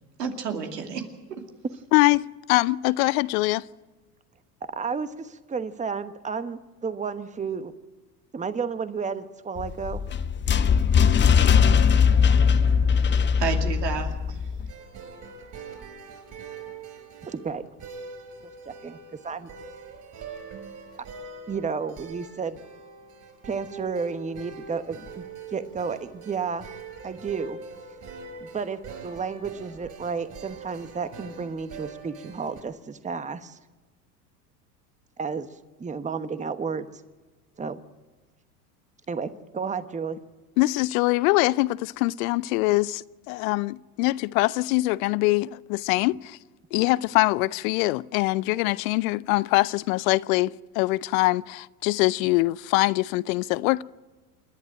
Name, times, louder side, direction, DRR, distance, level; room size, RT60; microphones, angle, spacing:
voice 1, 0.2-1.4 13.4-14.4, right 6 dB, 85° right, 2.6 m, -31 dB
voice 2, 1.9-3.6 40.6-46.4 46.7-53.8, left 20 dB, 60° left, 0.6 m, -23 dB
voice 3, 4.6-7.7 8.3-10.1 17.2-17.6 18.6-19.0 19.2-19.5 21.5-22.6 23.4-25.2 25.5-26.7 27.0-27.6 28.4-33.6 35.2-35.5 35.8-36.9 37.6-37.8 39.1-40.2, right 5 dB, 15° right, 1.1 m, -32 dB
sound 1, 9.6-14.7, left 6 dB, 25° left, 0.8 m, -20 dB
sound 2, 14.7-32.6, right 5 dB, 40° right, 5.0 m, -43 dB
28.5 x 11.0 x 9.0 m
hypercardioid pair, 85°, 47 cm